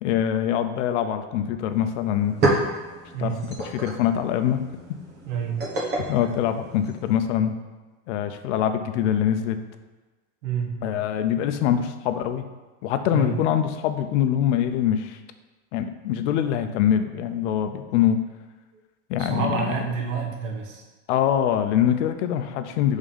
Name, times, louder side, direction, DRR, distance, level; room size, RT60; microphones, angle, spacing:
voice 1, 0.0-2.4 3.2-3.4 3.6-4.6 6.1-7.5 8.1-9.6 10.8-12.4 12.8-15.2 15.7-18.2 19.1-19.6 21.1-23.0, left 10 dB, 70° left, 9 dB, 0.7 m, -24 dB
sound 1, 1.7-1.8 2.1-7.3, right 2 dB, 30° right, 1.2 m, -29 dB
voice 2, 3.1-3.5 5.3-5.6 10.4-10.8 13.1-13.3 19.2-20.8, right 6 dB, 90° right, 0 dB, 1.4 m, -28 dB
5.3 x 3.6 x 5.4 m, 1.3 s
supercardioid pair, 165°, 37 cm